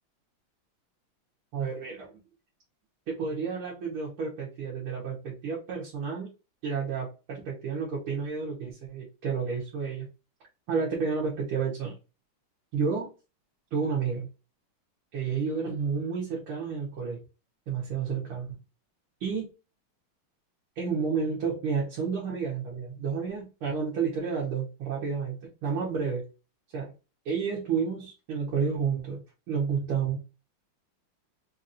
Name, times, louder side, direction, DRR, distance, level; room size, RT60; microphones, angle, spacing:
voice 1, 1.5-2.1 3.1-6.3 6.6-10.1 10.7-11.9 12.7-13.1 13.7-14.3 15.1-17.2 17.7-18.6 19.2-19.5 20.8-26.3 26.7-26.9 27.3-30.2, right 5 dB, 80° right, -5 dB, 2.1 m, -31 dB
4.6 x 2.9 x 2.6 m, 0.31 s
omnidirectional pair, 2.3 m